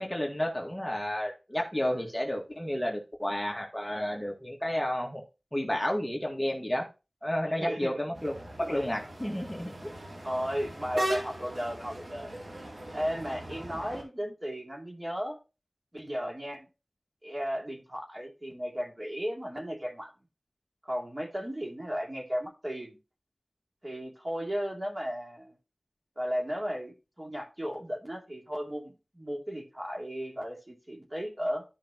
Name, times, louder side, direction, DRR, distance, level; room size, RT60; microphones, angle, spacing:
voice 1, 0.0-5.2 5.5-6.8 7.2-8.3 8.7-9.9, left 1 dB, 10° left, 0 dB, 1.8 m, -31 dB
voice 2, 7.6-8.0 8.6-8.7 10.2-12.4 12.9-15.4 15.9-16.7 17.2-20.1 20.8-23.0 23.8-25.5 26.2-31.6, equal, 35° right, 0 dB, 2.7 m, -35 dB
sound 1, 8.1-14.0, right 1 dB, 85° right, 2.9 m, -39 dB
13.0 x 5.2 x 3.0 m, 0.29 s
wide cardioid pair, 55°, 0 cm